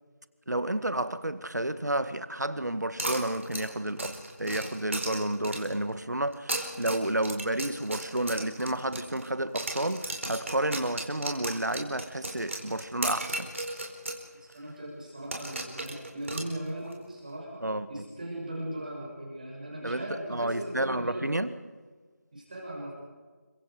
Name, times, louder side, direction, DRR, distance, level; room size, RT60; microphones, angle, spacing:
voice 1, 0.5-13.5 17.6-18.0 19.8-20.0 20.3-21.5, right 1 dB, 80° right, 1.9 m, -31 dB
sound 1, 3.0-5.8 6.3-9.3 9.6-14.2 14.5-14.6 15.3-16.9, right 2 dB, 45° right, 4.6 m, -36 dB
voice 2, 14.4-21.3 22.3-22.9, right 1 dB, 30° right, 6.1 m, -38 dB
30.0 x 24.0 x 5.1 m
figure-of-eight pair, 170°, 9 cm